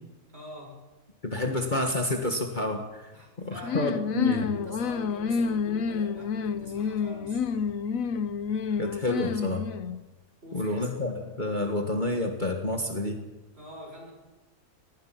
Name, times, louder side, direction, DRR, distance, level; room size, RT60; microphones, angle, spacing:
voice 1, 0.3-0.8 3.1-3.9 4.5-7.7 10.4-10.9 13.5-14.1, left 1 dB, 40° right, -1 dB, 7.1 m, -44 dB
voice 2, 1.2-3.1 3.4-4.5 8.8-9.7 10.5-13.2, left 2 dB, 30° left, 3 dB, 1.8 m, -29 dB
sound 1, 3.6-10.0, left 6 dB, 65° left, 1.2 m, -29 dB
25.0 x 19.0 x 6.0 m, 1.1 s
omnidirectional pair, 1.6 m